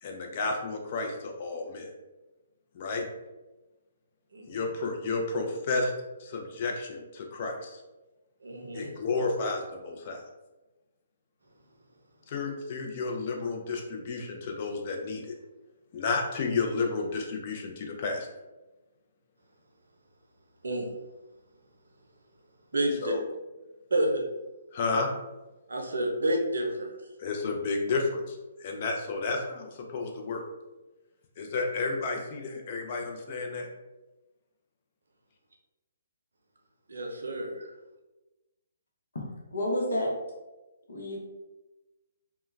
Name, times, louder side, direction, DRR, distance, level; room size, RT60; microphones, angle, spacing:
voice 1, 0.0-1.9 2.7-3.0 4.5-5.9 6.2-7.8 8.7-10.2 12.3-15.3 15.9-18.3 23.0-23.2 24.7-25.1 27.2-30.4 31.4-33.7, left 3 dB, 45° left, 2 dB, 0.5 m, -31 dB
voice 2, 4.3-4.7 8.4-8.9 20.6-20.9 22.7-23.1 23.9-24.2 25.7-26.9 36.9-37.5, right 1 dB, 75° right, 2 dB, 0.5 m, -29 dB
voice 3, 39.5-40.1 40.9-41.2, left 1 dB, 75° left, -2 dB, 0.8 m, -29 dB
2.2 x 2.2 x 3.1 m, 1.1 s
figure-of-eight pair, 135°, 0 cm